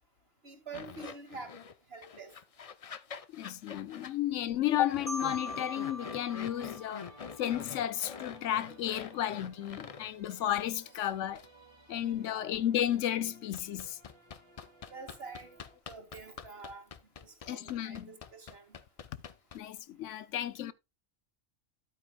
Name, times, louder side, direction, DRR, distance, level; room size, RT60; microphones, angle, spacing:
voice 1, 0.4-1.5 1.9-2.3 12.2-12.6 14.9-15.5 15.9-16.8 17.2-18.8, right 4 dB, 55° right, 2.3 m, -47 dB
sound 1, 0.7-1.7 2.0-4.1 4.9-10.1 10.5-10.6 11.3-11.5 13.5-19.8, left 6 dB, 45° left, 0.5 m, -46 dB
voice 2, 3.3-7.1 7.4-11.4 11.9-14.0 17.5-18.1 19.5-20.7, left 11 dB, 80° left, 1.0 m, -33 dB
Marimba xylophone, 5.1-7.9, left 1 dB, 5° left, 1.4 m, -42 dB
sound 2, 5.2-15.8, right 2 dB, 20° right, 1.5 m, -59 dB
11.5 x 9.1 x 2.2 m
omnidirectional pair, 1.2 m